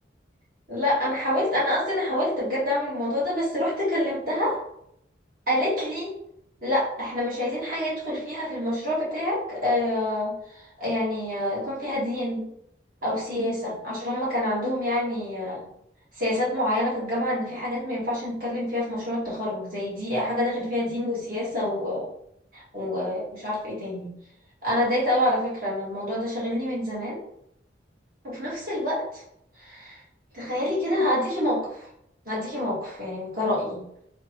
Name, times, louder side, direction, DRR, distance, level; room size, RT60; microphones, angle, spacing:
voice 1, 0.7-4.6 5.5-6.1 6.6-12.4 13.0-15.6 16.2-22.1 22.5-24.1 24.6-27.2 28.2-29.2 29.6-30.0 30.3-31.9 32.2-33.8, left 1 dB, 50° right, -7 dB, 1.4 m, -27 dB
3.6 x 2.2 x 2.8 m, 0.74 s
head